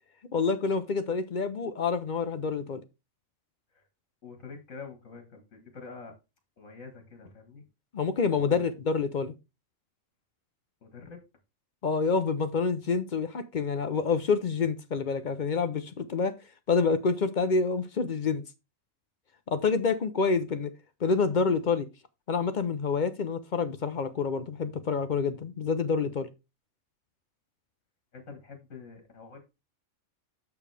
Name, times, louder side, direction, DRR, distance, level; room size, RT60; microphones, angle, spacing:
voice 1, 0.3-2.8 7.9-9.3 11.8-16.3 16.7-18.4 19.5-20.7 21.0-21.9 22.3-26.3, left 5 dB, 50° left, 0.6 m, -27 dB
voice 2, 4.2-6.1 6.6-7.7 8.3-8.7 10.8-11.2 28.1-29.4, left 4 dB, 70° left, 1.9 m, -46 dB
7.2 x 7.0 x 3.3 m
omnidirectional pair, 1.4 m